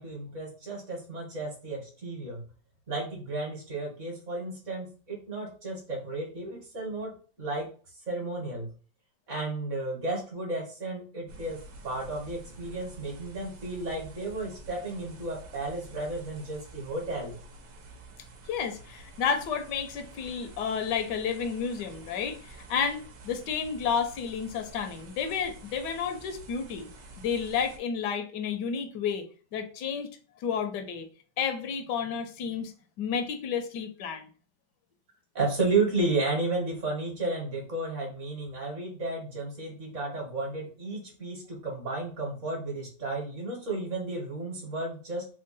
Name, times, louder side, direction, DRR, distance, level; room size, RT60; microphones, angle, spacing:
voice 1, 0.0-2.4 2.9-7.7 8.1-8.7 9.3-17.4 35.3-45.2, right 2 dB, 50° right, 1.4 m, -33 dB
sound 1, 11.3-27.8, right 2 dB, 90° right, 1.4 m, -49 dB
voice 2, 18.5-26.9 27.2-29.2 29.5-30.1 30.4-31.1 31.4-34.3, left 6 dB, 85° left, 1.3 m, -31 dB
3.6 x 2.1 x 3.9 m
omnidirectional pair, 1.8 m